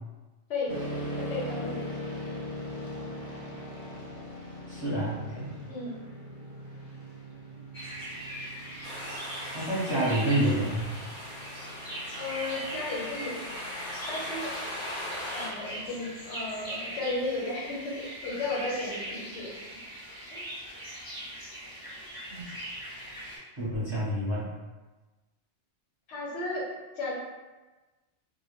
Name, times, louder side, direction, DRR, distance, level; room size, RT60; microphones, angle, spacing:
sound 1, 0.7-16.2, equal, 55° right, 0.4 m, -41 dB
voice 1, 1.3-1.8 5.7-5.9 12.2-13.5 14.1-14.5 15.3-19.5 20.3-20.5 26.1-26.6 26.9-27.1, left 2 dB, 80° left, -4 dB, 1.0 m, -34 dB
voice 2, 4.7-5.5 9.5-10.9 22.3-22.4 23.6-24.5, right 1 dB, 25° right, -10 dB, 0.7 m, -28 dB
sound 2, 7.7-23.4, right 1 dB, 20° left, 0.8 m, -41 dB
sound 3, 8.8-15.5, left 1 dB, 50° left, 0.7 m, -39 dB
2.1 x 2.1 x 3.0 m, 1.2 s
omnidirectional pair, 1.2 m